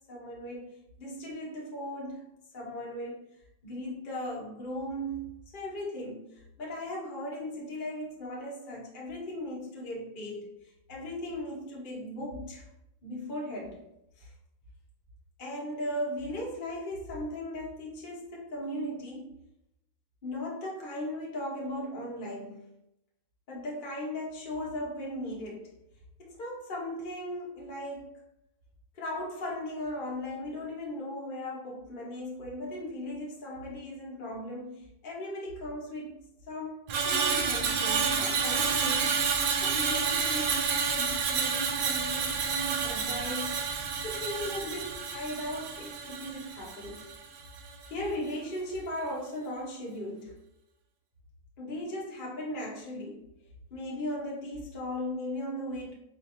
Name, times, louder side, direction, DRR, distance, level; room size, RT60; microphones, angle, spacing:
voice 1, 0.1-2.2 2.5-3.2 3.6-12.6 13.0-13.8 14.2-14.3 15.4-19.4 20.2-22.7 23.5-25.7 26.2-28.2 28.9-36.2 36.5-43.8 44.0-47.0 47.9-50.3 51.6-53.3 53.7-55.9, left 1 dB, 40° left, -4 dB, 1.0 m, -37 dB
Screech, 36.9-47.3 47.6-47.9, right 5 dB, 90° right, 1.1 m, -29 dB
4.8 x 3.0 x 2.6 m, 0.85 s
omnidirectional pair, 1.5 m